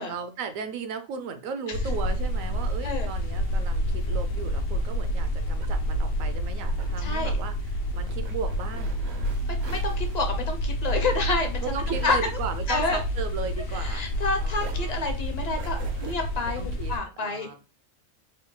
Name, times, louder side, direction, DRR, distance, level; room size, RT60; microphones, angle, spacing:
voice 1, 0.0-8.9 11.6-14.1 14.4-15.0 16.5-17.6, right 5 dB, 80° right, 9 dB, 1.0 m, -36 dB
sound 1, 1.7-17.0, equal, 75° left, 1.1 m, -29 dB
sound 2, 5.5-14.2 14.5-16.2, right 6 dB, 65° right, 0.7 m, -46 dB
voice 2, 7.0-7.4 9.6-11.7 12.0-12.2 12.7-13.0 13.8-17.5, left 3 dB, 40° left, 4 dB, 0.6 m, -29 dB
3.8 x 2.3 x 3.6 m, 0.31 s
omnidirectional pair, 1.4 m